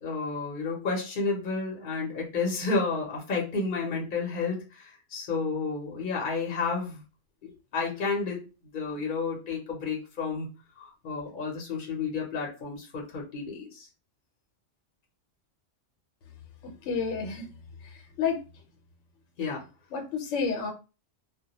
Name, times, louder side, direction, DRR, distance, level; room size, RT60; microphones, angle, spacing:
voice 1, 0.0-7.0 7.4-8.5 8.7-10.5 10.8-13.9 19.4-19.6, left 4 dB, 50° left, -1 dB, 0.8 m, -31 dB
voice 2, 16.6-17.5 18.2-18.4 19.9-20.7, left 5 dB, 75° left, 4 dB, 0.9 m, -29 dB
2.1 x 2.1 x 2.8 m, 0.31 s
omnidirectional pair, 1.3 m